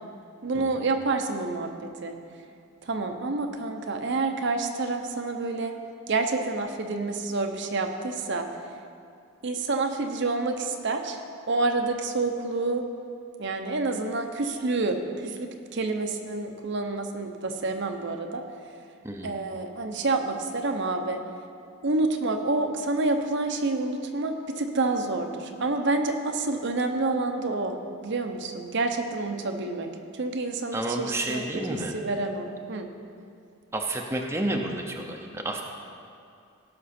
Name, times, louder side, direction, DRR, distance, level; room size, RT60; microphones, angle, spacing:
voice 1, 0.4-2.1 2.8-5.7 6.1-8.5 9.4-11.2 11.5-12.8 13.4-18.4 19.2-21.2 21.8-32.9, right 3 dB, 55° right, 5 dB, 0.7 m, -28 dB
voice 2, 30.7-31.9 33.7-35.6, right 1 dB, 10° right, 1 dB, 0.7 m, -30 dB
17.5 x 6.0 x 4.3 m, 2.4 s
head